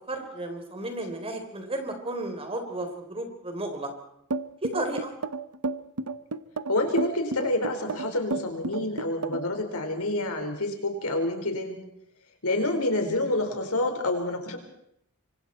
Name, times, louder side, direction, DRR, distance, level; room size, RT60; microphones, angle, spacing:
voice 1, 0.1-3.9 4.6-5.1 12.5-12.7, right 2 dB, 25° right, 5 dB, 3.9 m, -33 dB
sound 1, 4.3-9.6, right 3 dB, 85° right, 1.0 m, -31 dB
voice 2, 6.7-11.8 12.4-14.6, left 2 dB, 80° left, 4 dB, 4.8 m, -28 dB
27.0 x 24.5 x 4.5 m, 0.74 s
head